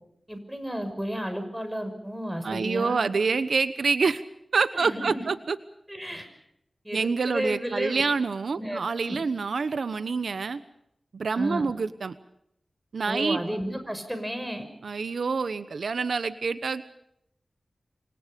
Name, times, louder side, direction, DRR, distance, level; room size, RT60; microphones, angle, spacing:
voice 1, 0.3-3.1 4.7-5.2 5.9-6.3 6.8-8.0 8.6-9.2 11.4-11.7 13.1-14.7, equal, 5° right, 7 dB, 6.0 m, -32 dB
voice 2, 2.4-4.2 4.5-5.6 6.9-10.6 11.1-12.1 12.9-13.4 14.8-16.8, right 4 dB, 85° right, 12 dB, 1.1 m, -27 dB
28.5 x 25.0 x 5.3 m, 0.76 s
wide cardioid pair, 95°, 0 cm